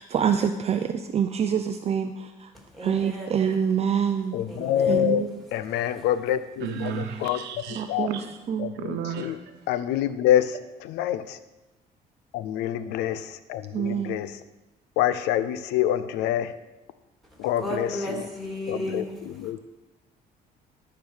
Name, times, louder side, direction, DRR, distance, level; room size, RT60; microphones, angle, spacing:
voice 1, 0.0-2.5 2.8-4.4 4.9-5.4 7.7-8.2 8.5-8.7 13.7-14.2, right 8 dB, 40° right, 0.5 m, -26 dB
voice 2, 2.5-3.4 4.5-5.2 5.7-6.1 17.3-19.4, left 1 dB, ahead, 3.1 m, -35 dB
voice 3, 4.3-5.2 5.5-7.4 7.9-8.1 8.6-8.7 9.2-9.3 9.7-10.5 10.9-11.4 12.3-14.3 15.0-16.5 17.4-17.9 18.7-19.0 19.4-19.6, left 11 dB, 90° left, 0.6 m, -26 dB
voice 4, 6.6-8.4 8.7-9.5, right 7 dB, 85° right, 1.1 m, -34 dB
13.0 x 4.8 x 6.4 m
cardioid pair, 110°, 17 cm